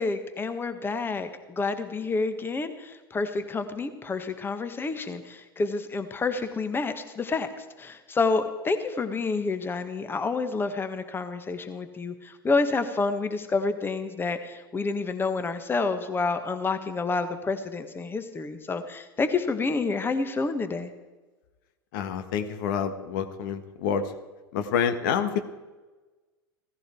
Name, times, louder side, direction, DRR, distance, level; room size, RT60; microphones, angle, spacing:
voice 1, 0.0-20.9, left 3 dB, 20° left, 9 dB, 1.5 m, -29 dB
voice 2, 21.9-24.1 24.5-25.4, left 7 dB, 60° left, 8 dB, 1.5 m, -27 dB
17.0 x 15.0 x 4.6 m, 1.2 s
figure-of-eight pair, 90°, 12 cm